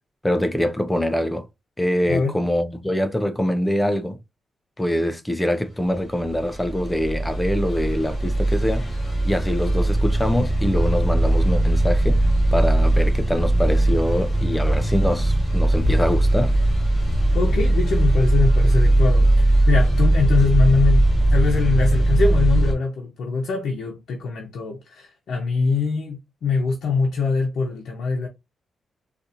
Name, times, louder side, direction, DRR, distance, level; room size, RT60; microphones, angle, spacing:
voice 1, 0.2-1.5 1.8-4.2 4.8-8.9 9.2-12.2 12.5-16.5, equal, 10° left, 0.4 m, -24 dB
sound 1, 6.2-22.7, right 1 dB, 25° left, 1.1 m, -19 dB
voice 2, 17.3-28.3, left 5 dB, 75° left, 0.7 m, -23 dB
4.0 x 2.5 x 2.5 m
wide cardioid pair, 170°, 0 cm